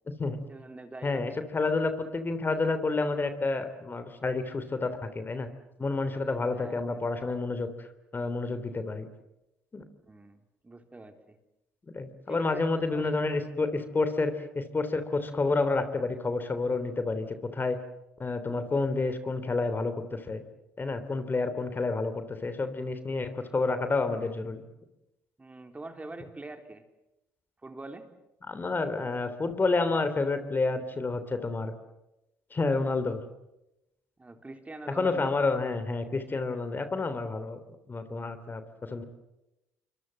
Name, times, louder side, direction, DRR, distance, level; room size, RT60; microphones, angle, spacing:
voice 1, 0.5-1.3 6.5-6.8 10.0-10.4 10.6-11.4 12.3-13.4 25.4-26.8 27.6-28.1 34.2-35.4, right 2 dB, 20° right, 7 dB, 3.9 m, -44 dB
voice 2, 1.0-5.5 5.8-7.9 8.1-9.1 9.7-9.8 11.9-17.3 17.5-17.8 18.2-20.4 20.8-24.6 28.5-31.7 32.5-33.2 34.9-37.6 37.9-38.6 38.9-39.0, left 3 dB, 30° left, 10 dB, 3.3 m, -29 dB
28.5 x 24.5 x 7.8 m, 0.92 s
hypercardioid pair, 55°, 7 cm